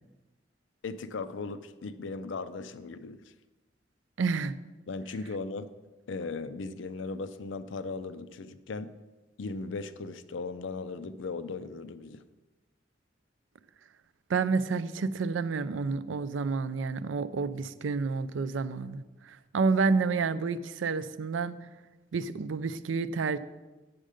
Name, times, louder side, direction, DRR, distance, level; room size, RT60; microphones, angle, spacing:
voice 1, 0.8-3.2 4.9-5.7 6.1-8.9 9.4-12.2, left 3 dB, 80° left, 13 dB, 0.5 m, -37 dB
voice 2, 4.2-4.5 14.3-21.6 22.1-23.4, right 4 dB, 85° right, 14 dB, 0.4 m, -29 dB
8.7 x 6.4 x 5.0 m, 1.2 s
head